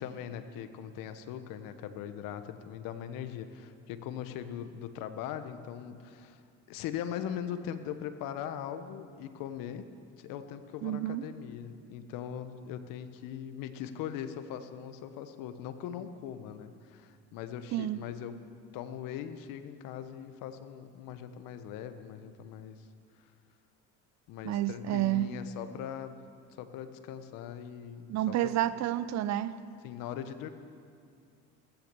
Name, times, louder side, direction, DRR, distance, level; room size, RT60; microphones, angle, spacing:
voice 1, 0.0-6.4 6.7-9.9 10.2-18.4 18.7-22.9 24.3-26.2 26.5-28.5 29.8-30.5, left 9 dB, 80° left, 10 dB, 1.2 m, -40 dB
voice 2, 10.8-11.2 17.7-18.0 24.4-25.3 28.1-29.6, right 13 dB, 55° right, 15 dB, 0.7 m, -30 dB
14.5 x 14.5 x 6.9 m, 2.4 s
supercardioid pair, 95°, 33 cm